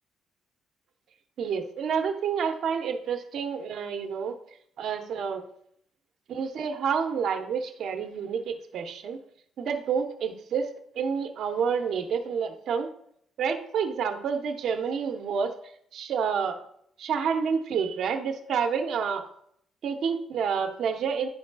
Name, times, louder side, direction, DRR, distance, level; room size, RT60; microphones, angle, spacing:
voice 1, 1.4-4.3 4.8-5.4 6.3-9.2 9.6-10.7 11.0-12.9 13.4-15.5 15.9-16.6 17.0-19.3 19.8-21.3, right 6 dB, 70° right, 5 dB, 1.0 m, -29 dB
11.0 x 5.3 x 2.4 m, 0.67 s
cardioid pair, 90°, 0 cm